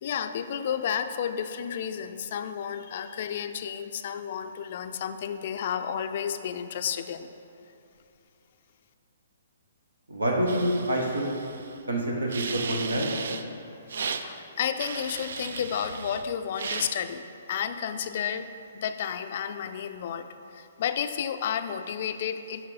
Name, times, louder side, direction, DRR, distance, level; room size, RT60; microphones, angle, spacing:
voice 1, 0.0-7.3 14.1-18.5 18.7-22.7, left 8 dB, 50° left, 10 dB, 0.4 m, -32 dB
voice 2, 10.1-11.3 11.9-13.0, right 1 dB, 85° right, -1 dB, 1.3 m, -27 dB
sound 1, 10.5-11.8 12.3-13.4 13.9-14.2 14.8-16.3 16.5-16.9, right 5 dB, 65° right, 0.4 m, -36 dB
8.6 x 4.7 x 4.0 m, 2.7 s
figure-of-eight pair, 130°, 0 cm